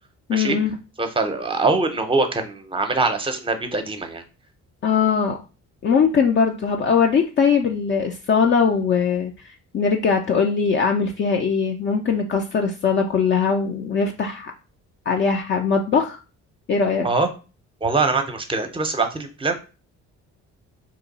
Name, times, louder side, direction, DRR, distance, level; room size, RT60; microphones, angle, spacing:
voice 1, 0.3-0.7 4.8-5.4 5.8-9.3 9.7-14.5 15.1-16.2 16.7-17.1, left 6 dB, 40° left, 2 dB, 0.4 m, -20 dB
voice 2, 1.0-4.2 17.0-17.3 17.8-19.6, right 3 dB, 15° right, 7 dB, 0.6 m, -23 dB
2.9 x 2.2 x 3.9 m, 0.33 s
cardioid pair, 90°, 30 cm